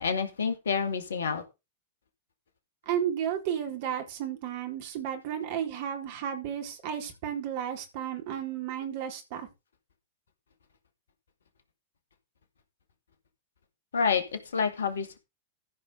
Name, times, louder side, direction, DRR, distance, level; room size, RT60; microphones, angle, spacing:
voice 1, 0.0-1.4 13.9-15.2, left 6 dB, 70° left, 2.3 m, -28 dB
voice 2, 2.9-9.5, right 9 dB, 50° right, 4.2 m, -33 dB
14.5 x 5.7 x 5.1 m
figure-of-eight pair, 90°, 0 cm